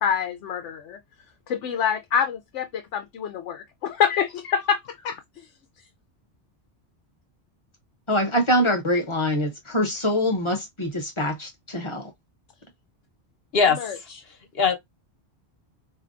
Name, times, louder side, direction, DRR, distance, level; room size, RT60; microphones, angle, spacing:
voice 1, 0.0-1.0 1.5-5.2 13.7-14.0, left 7 dB, 90° left, 0.9 m, -26 dB
voice 2, 8.1-12.1, equal, 30° left, 0.9 m, -24 dB
voice 3, 13.5-14.0 14.5-14.7, left 5 dB, 60° left, 1.2 m, -21 dB
4.4 x 2.7 x 2.4 m
omnidirectional pair, 1.2 m